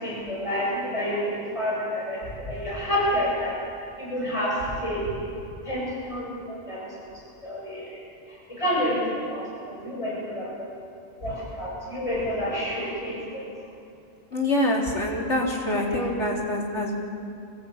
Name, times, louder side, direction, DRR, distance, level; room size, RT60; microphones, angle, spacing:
voice 1, 0.0-2.2 2.5-3.5 4.0-4.5 4.8-5.0 5.7-6.9 7.4-7.9 8.6-9.0 9.3-10.5 11.2-13.4 15.9-16.0, equal, 25° left, -5 dB, 8.1 m, -29 dB
voice 2, 14.3-17.0, left 1 dB, 75° left, -1 dB, 4.1 m, -25 dB
25.5 x 19.5 x 8.8 m, 2.6 s
omnidirectional pair, 1.2 m